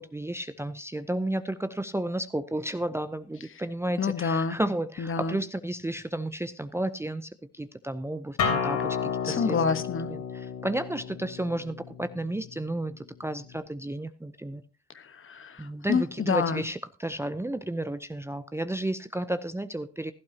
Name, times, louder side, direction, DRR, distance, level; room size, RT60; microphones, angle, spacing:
voice 1, 0.0-9.6 10.1-14.6 15.6-20.1, right 1 dB, 10° right, 11 dB, 0.6 m, -32 dB
voice 2, 4.0-4.6 5.0-5.4 9.3-10.1 14.9-16.6, left 5 dB, 45° left, 12 dB, 1.2 m, -28 dB
Acoustic guitar, 8.4-13.6, left 6 dB, 75° left, 3.6 m, -32 dB
16.5 x 11.5 x 2.8 m, 0.31 s
cardioid pair, 90°, 30 cm